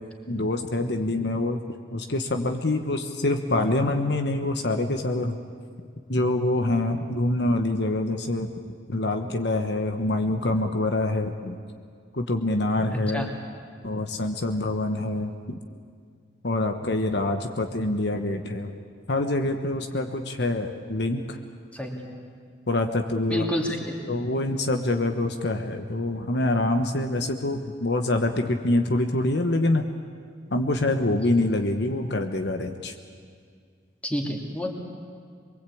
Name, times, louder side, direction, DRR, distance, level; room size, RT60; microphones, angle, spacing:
voice 1, 0.3-1.6 1.9-5.4 6.1-8.5 8.9-11.6 12.1-13.3 13.8-15.3 16.4-18.7 19.1-21.4 22.7-23.4 24.1-29.9 30.5-32.9, left 2 dB, 65° left, 5 dB, 1.2 m, -25 dB
voice 2, 12.9-13.3 21.7-22.1 23.3-24.0 34.0-34.7, equal, 5° left, 0 dB, 2.8 m, -29 dB
24.0 x 22.5 x 8.6 m, 2.1 s
head